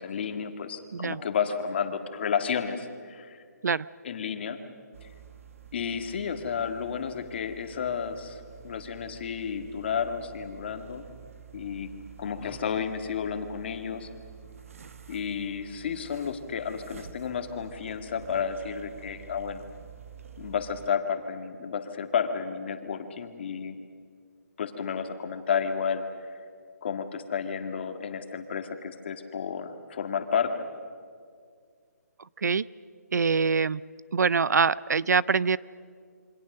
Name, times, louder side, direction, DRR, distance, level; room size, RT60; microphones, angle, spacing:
voice 1, 0.0-3.4 4.0-4.6 5.7-11.1 11.5-11.9 12.2-14.1 15.1-19.6 20.4-23.8 24.6-26.3 26.8-30.7, left 7 dB, 40° left, 7 dB, 1.8 m, -31 dB
sound 1, 4.9-20.9, right 8 dB, 50° right, 1.5 m, -49 dB
voice 2, 33.1-33.8 34.1-35.6, right 5 dB, 75° right, 21 dB, 0.6 m, -24 dB
27.5 x 24.5 x 6.6 m, 2.1 s
hypercardioid pair, 170°, 9 cm